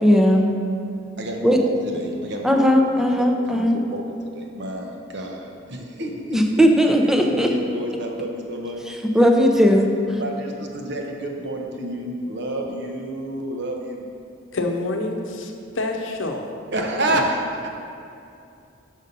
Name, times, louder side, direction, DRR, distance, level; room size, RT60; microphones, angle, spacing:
voice 1, 0.0-0.5 1.4-1.6 2.4-3.8 6.3-7.5 9.1-9.9, equal, 5° right, 2 dB, 0.5 m, -17 dB
voice 2, 1.2-2.7 3.1-3.3 3.5-8.8 10.2-14.1 16.7-17.7, right 1 dB, 65° right, 2 dB, 0.9 m, -29 dB
voice 3, 14.5-16.5 17.1-17.2, left 2 dB, 85° left, 3 dB, 0.7 m, -27 dB
6.3 x 5.5 x 5.3 m, 2.5 s
head